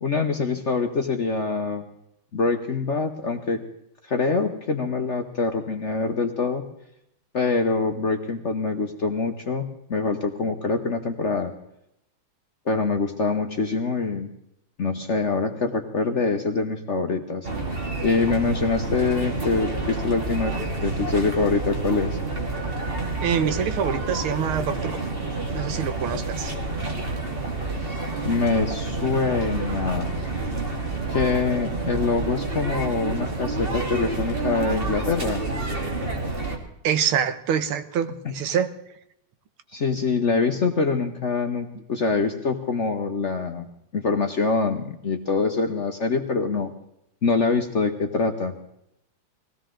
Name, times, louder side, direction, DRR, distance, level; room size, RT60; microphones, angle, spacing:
voice 1, 0.0-1.9 2.3-3.6 4.0-6.6 7.3-9.6 9.9-11.5 12.7-14.3 14.8-17.5 18.0-20.5 20.8-22.2 28.2-30.1 31.1-35.4 39.7-43.7 43.9-46.7 47.2-48.5, left 4 dB, 45° left, 5 dB, 1.0 m, -24 dB
sound 1, 17.4-36.6, right 2 dB, 25° right, 2.2 m, -29 dB
voice 2, 23.2-25.2 25.5-26.5 36.8-38.7, right 8 dB, 85° right, 11 dB, 1.8 m, -25 dB
20.5 x 16.0 x 3.8 m, 0.78 s
omnidirectional pair, 2.3 m